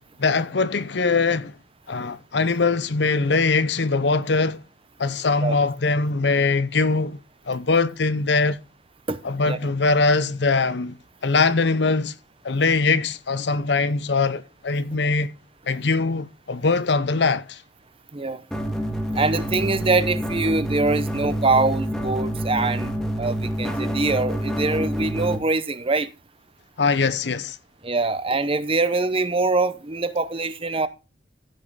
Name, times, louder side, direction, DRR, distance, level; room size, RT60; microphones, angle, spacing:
voice 1, 0.2-1.5 1.9-4.6 5.0-7.2 7.5-8.6 9.2-11.0 11.2-12.2 12.4-15.3 15.7-17.6 26.8-27.6, left 4 dB, 65° left, 0.7 m, -22 dB
sound 1, 18.5-25.4, equal, 5° left, 1.8 m, -27 dB
voice 2, 19.1-26.1 27.8-30.9, right 3 dB, 30° right, 0.8 m, -23 dB
15.0 x 5.6 x 4.0 m
head